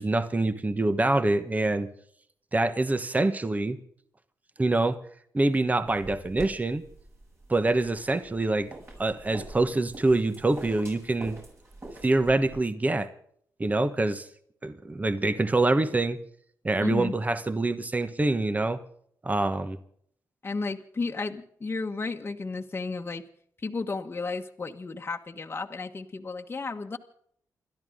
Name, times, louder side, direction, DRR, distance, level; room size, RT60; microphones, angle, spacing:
voice 1, 0.0-1.9 2.5-3.8 4.6-5.0 5.3-6.8 7.5-8.7 9.0-11.4 12.0-13.1 13.6-14.3 14.6-16.2 16.6-18.8 19.2-19.8, right 2 dB, 20° right, 11 dB, 1.3 m, -25 dB
sound 1, 5.9-12.6, right 2 dB, 40° right, 7.3 m, -45 dB
voice 2, 16.8-17.1 20.4-23.2 23.6-27.0, left 3 dB, 35° left, 2 dB, 1.3 m, -33 dB
29.5 x 13.0 x 3.8 m, 0.66 s
cardioid pair, 90°, 7 cm